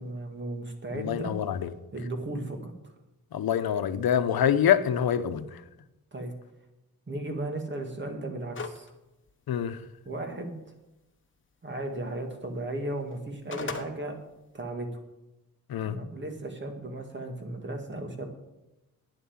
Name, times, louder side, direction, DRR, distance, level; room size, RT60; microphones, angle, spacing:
voice 1, 0.0-1.3 1.9-2.7 6.1-6.3 7.1-8.9 10.1-10.6 11.6-14.2 14.5-14.9 15.8-18.3, right 1 dB, 30° right, 2.0 m, -35 dB
voice 2, 0.9-1.7 3.3-5.5 9.5-9.8 15.7-16.0, left 9 dB, 85° left, 0.9 m, -25 dB
sound 1, 8.5-8.9 9.3-9.4 13.1-13.9, left 4 dB, 35° left, 1.2 m, -35 dB
11.5 x 9.7 x 7.2 m
wide cardioid pair, 150°, 36 cm